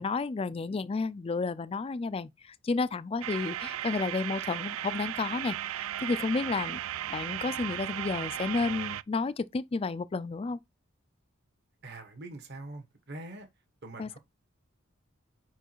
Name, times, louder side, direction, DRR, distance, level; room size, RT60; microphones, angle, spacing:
voice 1, 0.0-6.8 7.1-10.6 14.0-14.2, left 4 dB, 30° left, 0.3 m, -31 dB
sound 1, 3.2-9.0, right 12 dB, 75° right, 0.3 m, -36 dB
voice 2, 11.8-13.5 13.8-14.2, right 2 dB, 55° right, 1.3 m, -43 dB
4.9 x 4.6 x 4.5 m
head